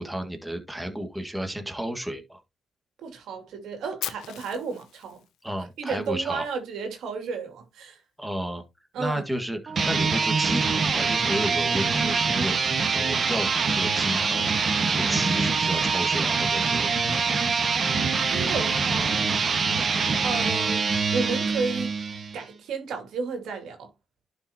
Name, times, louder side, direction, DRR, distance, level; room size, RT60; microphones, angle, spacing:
voice 1, 0.0-2.4 5.4-6.5 8.2-8.6 9.0-14.5 14.9-16.9, equal, 5° right, 1.9 m, -32 dB
voice 2, 3.0-5.2 5.6-8.0 8.9-9.2 18.2-19.4 20.2-22.0 22.3-23.9, right 5 dB, 85° right, 2.6 m, -33 dB
Fire, 4.0-6.1, left 12 dB, 90° left, 0.8 m, -38 dB
sound 1, 9.7-22.4, right 5 dB, 50° right, 1.5 m, -24 dB
11.5 x 5.4 x 2.9 m
cardioid pair, 90°, 0 cm